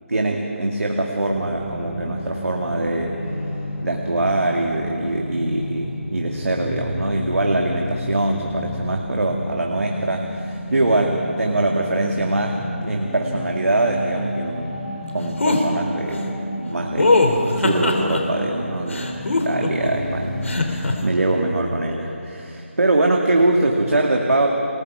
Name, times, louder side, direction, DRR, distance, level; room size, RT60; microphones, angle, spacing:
voice 1, 0.1-3.2 3.8-16.3 16.6-17.3 17.5-24.5, right 2 dB, 85° right, 0 dB, 2.3 m, -23 dB
sound 1, 1.3-20.5, equal, 25° left, 5.9 m, -31 dB
sound 2, 15.4-15.6 17.0-18.2 18.9-19.9 20.4-20.9, left 3 dB, 60° left, 3.2 m, -19 dB
28.5 x 20.0 x 4.9 m, 2.7 s
figure-of-eight pair, 180°, 8 cm